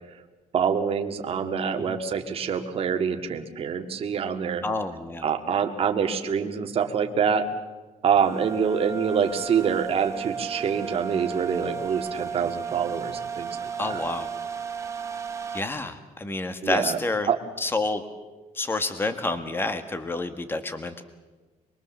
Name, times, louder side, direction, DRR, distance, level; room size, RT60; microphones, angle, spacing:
voice 1, 0.5-4.6 5.2-7.5 8.0-14.0 16.6-17.0 17.3-17.4, right 7 dB, 45° right, 5 dB, 1.9 m, -26 dB
voice 2, 4.6-5.2 13.8-14.3 15.5-17.3 17.6-18.0 18.5-21.0, left 2 dB, 15° left, 9 dB, 1.6 m, -28 dB
sound 1, 8.2-15.6, right 6 dB, 20° right, 1.4 m, -34 dB
24.0 x 22.0 x 7.3 m, 1.2 s
cardioid pair, 145°, 14 cm